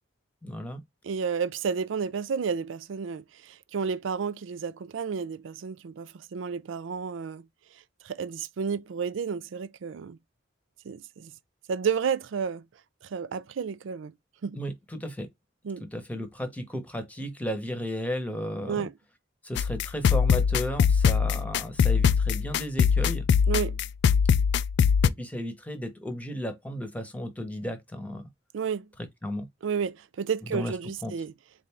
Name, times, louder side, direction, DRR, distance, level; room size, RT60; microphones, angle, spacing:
voice 1, 0.4-0.8 14.5-15.3 15.9-18.9 19.4-23.3 25.0-28.3 29.2-29.4 30.5-30.7 31.0-31.1, equal, 10° left, 0.9 m, -34 dB
voice 2, 1.0-7.4 8.0-10.2 10.9-11.3 11.7-12.6 13.1-14.1 14.4-14.6 15.6-15.8 18.6-18.9 23.5-23.8 28.5-28.9 29.6-31.3, right 6 dB, 75° right, 0.4 m, -31 dB
sound 1, 19.6-25.1, left 6 dB, 60° left, 0.3 m, -22 dB
4.3 x 2.5 x 3.4 m
head